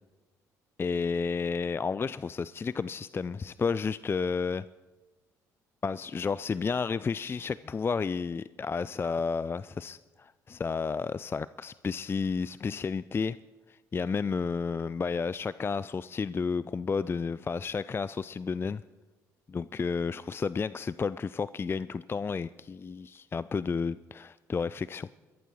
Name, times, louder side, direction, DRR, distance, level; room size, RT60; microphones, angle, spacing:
voice 1, 0.8-4.6 5.8-13.4 13.7-18.8 19.5-25.1, left 5 dB, 25° left, 17 dB, 0.3 m, -31 dB
22.5 x 15.0 x 3.1 m, 1.2 s
hypercardioid pair, 55°, 9 cm